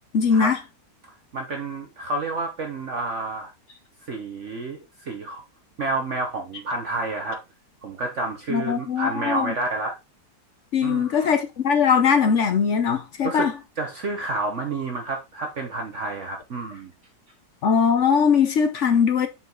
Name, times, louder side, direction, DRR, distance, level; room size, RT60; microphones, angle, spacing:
voice 1, 0.1-0.6 8.5-9.5 10.7-13.5 17.6-19.3, left 6 dB, 55° left, 1.0 m, -20 dB
voice 2, 1.3-3.5 4.1-5.4 5.8-7.4 7.8-9.9 10.8-11.3 13.2-13.5 13.8-16.9, right 2 dB, 50° right, 1.2 m, -29 dB
5.6 x 4.9 x 3.8 m
omnidirectional pair, 1.7 m